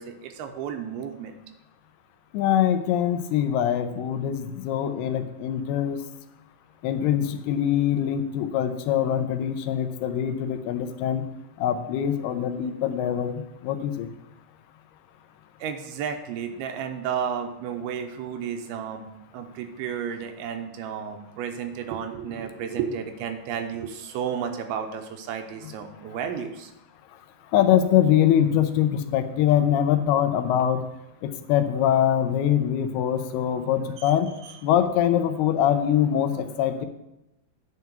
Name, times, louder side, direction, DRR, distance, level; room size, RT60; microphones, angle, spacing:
voice 1, 0.0-1.4 15.6-19.1 19.3-26.7 34.0-34.2 34.4-34.5, right 7 dB, 85° right, 6 dB, 2.7 m, -32 dB
voice 2, 2.3-6.0 6.8-11.3 11.6-14.1 27.5-30.8 31.2-34.3 34.6-36.9, left 10 dB, 85° left, 8 dB, 2.7 m, -23 dB
9.5 x 4.7 x 6.7 m, 0.89 s
omnidirectional pair, 4.6 m